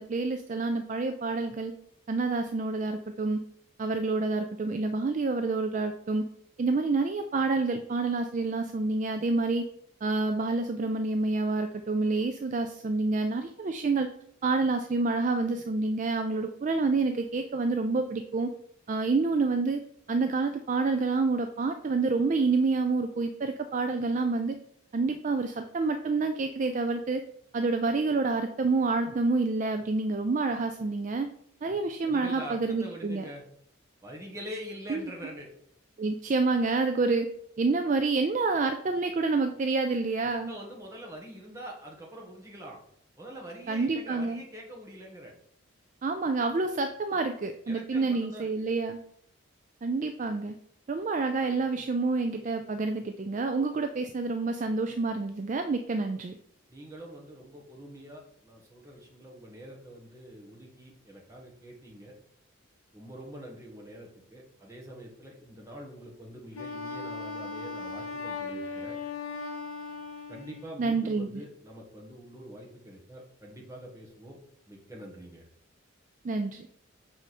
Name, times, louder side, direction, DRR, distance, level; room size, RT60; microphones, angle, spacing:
voice 1, 0.0-1.7 2.1-3.4 3.8-6.2 6.6-9.7 10.0-14.1 14.4-18.5 18.9-19.8 20.1-24.6 24.9-27.2 27.5-31.3 31.6-33.2 34.9-35.0 36.0-37.3 37.6-40.5 43.7-44.4 46.0-49.0 49.8-50.6 50.9-56.4 70.8-71.4 76.2-76.7, right 3 dB, 35° right, 7 dB, 0.3 m, -28 dB
voice 2, 32.0-33.4 34.0-35.5 40.2-42.8 43.2-45.4 47.6-48.7 56.7-62.1 62.9-69.0 70.3-74.4 74.7-75.5, equal, 15° right, -2 dB, 1.3 m, -44 dB
Wind instrument woodwind instrument, 66.5-70.9, left 4 dB, 85° left, 0.9 m, -38 dB
6.4 x 4.8 x 4.2 m, 0.68 s
head